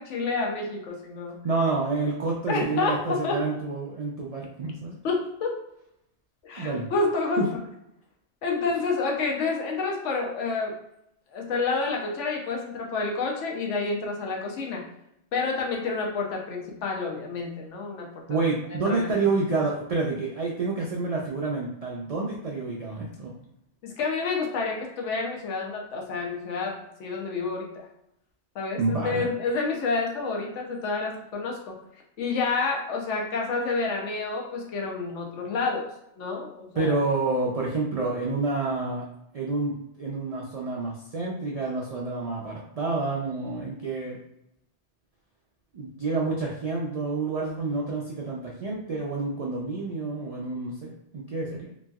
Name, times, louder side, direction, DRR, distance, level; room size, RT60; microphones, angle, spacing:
voice 1, 0.0-1.4 2.5-3.4 5.0-5.6 6.4-7.6 8.4-10.7 11.3-14.8 15.3-19.1 23.8-27.9 28.5-31.8 32.2-35.9 36.2-36.9, left 4 dB, 90° left, 0 dB, 1.0 m, -29 dB
voice 2, 1.4-5.0 6.6-6.9 7.4-7.5 18.3-23.3 28.8-29.3 36.8-39.0 39.3-44.2 45.7-51.7, right 3 dB, 70° right, -3 dB, 0.3 m, -28 dB
3.0 x 2.6 x 2.3 m, 0.79 s
omnidirectional pair, 1.2 m